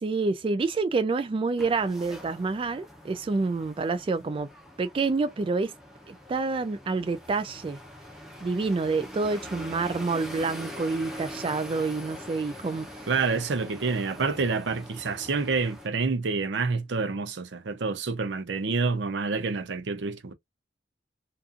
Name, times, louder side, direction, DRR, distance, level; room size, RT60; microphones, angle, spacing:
voice 1, 0.0-4.5 4.8-5.7 6.1-7.8 8.4-12.9, right 3 dB, 30° right, 0.3 m, -28 dB
sound 1, 1.6-15.9, equal, ahead, 0.7 m, -43 dB
voice 2, 13.1-20.3, right 4 dB, 75° right, 0.6 m, -28 dB
2.5 x 2.4 x 2.4 m
head